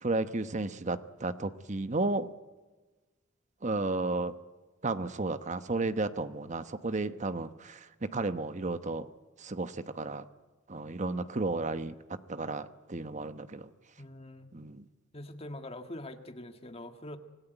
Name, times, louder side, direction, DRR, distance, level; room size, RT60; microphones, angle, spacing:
voice 1, 0.0-2.3 3.6-4.3 4.8-9.1 9.4-10.2 10.7-11.9 12.3-13.7 14.5-14.8, right 2 dB, 40° right, 11 dB, 1.0 m, -33 dB
voice 2, 14.0-14.5 15.1-17.2, left 1 dB, 30° left, 7 dB, 1.7 m, -43 dB
26.0 x 18.0 x 9.3 m, 1.2 s
head